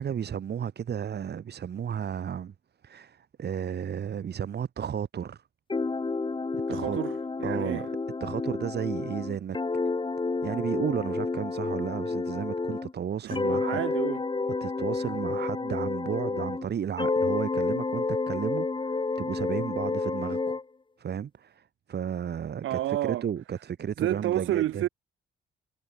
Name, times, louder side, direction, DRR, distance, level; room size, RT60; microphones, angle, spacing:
voice 1, 0.0-2.5 2.8-5.4 6.7-7.0 7.4-7.9 8.2-9.6 10.4-13.8 14.6-20.6 21.0-24.9, right 8 dB, 55° right, 5.4 m, -33 dB
sound 1, 5.7-12.9 13.3-16.7 17.0-20.6, left 3 dB, 25° left, 3.6 m, -30 dB
voice 2, 6.7-7.9 13.2-14.2 22.6-23.3 24.0-24.9, right 14 dB, 80° right, 2.7 m, -30 dB
cardioid pair, 90°, 20 cm